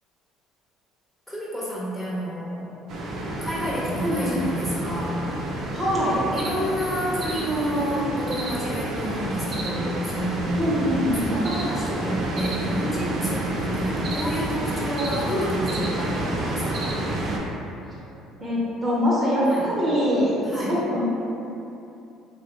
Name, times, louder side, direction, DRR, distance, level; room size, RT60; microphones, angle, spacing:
voice 1, 1.3-2.8 3.4-5.2 6.3-11.0 11.2-17.0 19.4-19.7 20.4-20.7, equal, 10° left, -8 dB, 0.8 m, -29 dB
sound 1, 2.9-17.4, right 1 dB, 55° right, 0.5 m, -29 dB
voice 2, 4.0-4.4 5.7-6.3 10.6-11.2 18.4-21.0, equal, 25° right, -7 dB, 0.7 m, -23 dB
3.0 x 2.1 x 3.1 m, 2.8 s
supercardioid pair, 90°, 0 cm